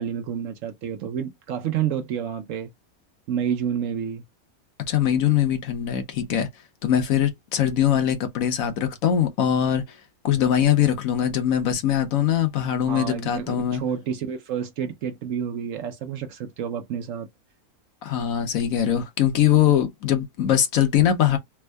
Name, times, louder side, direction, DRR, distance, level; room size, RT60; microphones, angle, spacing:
voice 1, 0.0-2.7 3.3-4.2 12.9-17.3, right 8 dB, 65° right, 0.9 m, -29 dB
voice 2, 4.9-6.5 6.8-9.8 10.2-13.8 18.0-21.4, left 10 dB, 65° left, 1.1 m, -22 dB
3.5 x 2.0 x 3.3 m
omnidirectional pair, 1.6 m